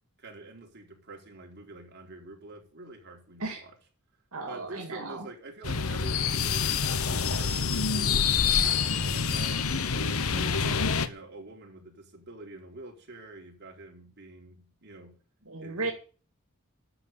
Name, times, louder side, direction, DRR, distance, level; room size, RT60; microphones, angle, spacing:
voice 1, 0.2-3.7 4.5-10.2 10.9-15.2 15.6-15.9, right 2 dB, 50° right, 4.4 m, -47 dB
voice 2, 4.3-5.3 10.3-10.7 15.5-15.9, right 3 dB, 85° right, 2.6 m, -35 dB
sound 1, 5.6-11.1, left 6 dB, 75° left, 1.1 m, -26 dB
11.5 x 7.6 x 8.7 m
head